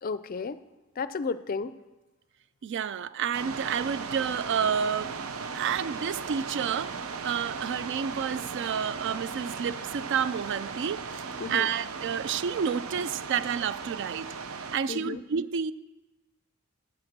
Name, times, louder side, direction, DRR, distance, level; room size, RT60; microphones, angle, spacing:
voice 1, 0.0-0.6 1.0-1.7 11.4-11.7 14.9-15.2, left 4 dB, 40° left, 14 dB, 0.4 m, -33 dB
voice 2, 2.6-5.1 5.5-14.3 14.7-15.7, right 7 dB, 55° right, 16 dB, 0.3 m, -30 dB
sound 1, 3.3-14.8, right 5 dB, 90° right, 0.7 m, -37 dB
8.2 x 7.9 x 6.0 m, 1.1 s
head